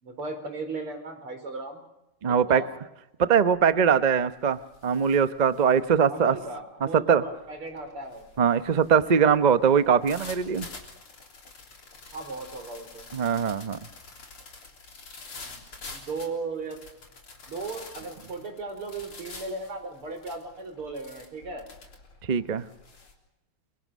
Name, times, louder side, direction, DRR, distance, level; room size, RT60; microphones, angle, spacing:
voice 1, 0.0-1.9 2.3-2.7 6.1-8.3 12.1-13.0 15.4-15.6 15.9-16.8 17.5-21.7, right 3 dB, 90° right, 6 dB, 5.3 m, -36 dB
voice 2, 2.2-2.6 3.2-6.4 6.9-7.2 8.4-10.7 13.1-13.8 22.3-22.7, right 7 dB, 65° right, 13 dB, 0.4 m, -22 dB
sound 1, 3.5-3.8 4.2-23.1, left 3 dB, 85° left, 4.5 m, -47 dB
28.5 x 24.5 x 6.3 m, 0.90 s
omnidirectional pair, 2.3 m